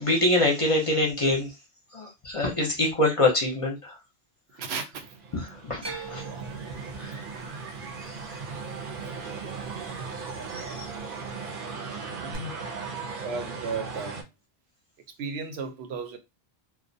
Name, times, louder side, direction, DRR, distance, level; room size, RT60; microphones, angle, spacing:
voice 1, 0.0-1.5 1.9-4.0 5.5-6.3 7.0-7.2 8.1-8.2 10.5-10.9, left 2 dB, 40° left, 0.6 m, -25 dB
voice 2, 4.5-5.2 12.2-12.6 13.2-14.2 15.2-16.2, right 4 dB, 85° right, 0.9 m, -34 dB
sound 1, 4.9-14.2, right 5 dB, 60° right, 0.7 m, -37 dB
sound 2, 5.8-10.0 10.3-11.0 12.3-12.4, right 3 dB, 40° right, 0.4 m, -43 dB
2.3 x 2.1 x 2.6 m
omnidirectional pair, 1.0 m